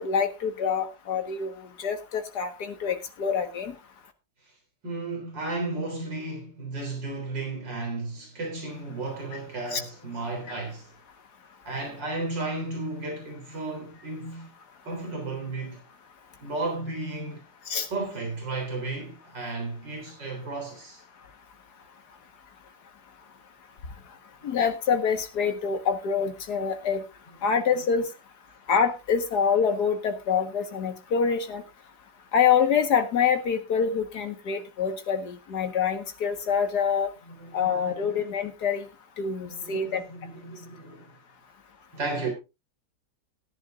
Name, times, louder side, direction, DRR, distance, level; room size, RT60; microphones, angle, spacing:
voice 1, 0.0-1.5 1.8-3.7 9.7-9.8 17.7-17.9 24.4-27.0 27.4-28.1 28.7-31.6 32.3-37.1 37.5-38.9 39.2-40.0, left 6 dB, 65° left, 2.0 m, -26 dB
voice 2, 4.8-10.9 11.7-14.5 14.9-15.8 16.4-17.4 17.9-21.0 24.4-24.5 37.3-38.0 39.4-41.1 41.9-42.3, right 2 dB, 80° right, 4.3 m, -34 dB
18.0 x 10.5 x 2.5 m
omnidirectional pair, 1.9 m